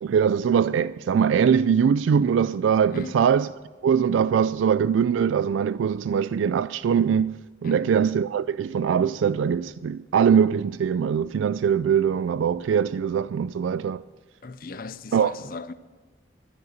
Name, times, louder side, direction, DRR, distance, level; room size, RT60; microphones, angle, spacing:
voice 1, 0.0-3.5 3.8-7.3 7.6-14.0 15.1-15.3, right 7 dB, 85° right, 0.3 m, -22 dB
voice 2, 7.6-8.0 14.4-15.7, left 4 dB, 50° left, 0.6 m, -37 dB
12.5 x 10.5 x 6.5 m
head